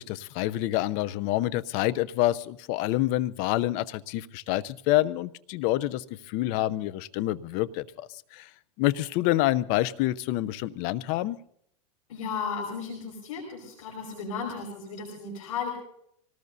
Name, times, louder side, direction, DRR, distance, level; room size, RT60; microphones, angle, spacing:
voice 1, 0.0-8.1 8.3-8.5 8.8-11.4, left 15 dB, 50° left, 17 dB, 0.7 m, -27 dB
voice 2, 12.1-15.7, left 5 dB, 75° left, 0 dB, 5.2 m, -34 dB
25.0 x 19.0 x 2.7 m, 0.70 s
supercardioid pair, 130°, 17 cm